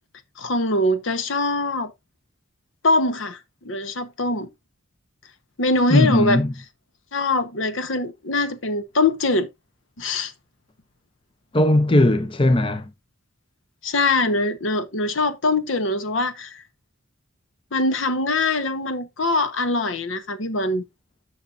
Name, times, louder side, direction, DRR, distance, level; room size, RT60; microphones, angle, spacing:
voice 1, 0.4-1.9 2.8-3.4 3.6-4.5 5.6-6.4 7.1-9.5 10.0-10.3 13.8-16.6 17.7-20.8, left 2 dB, 75° left, 1.0 m, -23 dB
voice 2, 5.9-6.5 11.5-12.9, left 1 dB, 25° left, 0.6 m, -18 dB
11.0 x 6.0 x 2.5 m
head